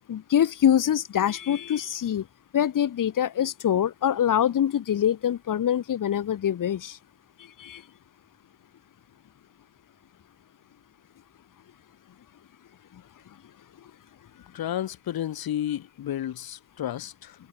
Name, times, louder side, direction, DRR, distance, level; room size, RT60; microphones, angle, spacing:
voice 1, 0.1-2.2 2.5-7.0 7.6-7.8, left 10 dB, 60° left, 1.7 m, -24 dB
voice 2, 14.5-17.4, left 11 dB, 80° left, 2.2 m, -32 dB
open air
wide cardioid pair, 130°, 36 cm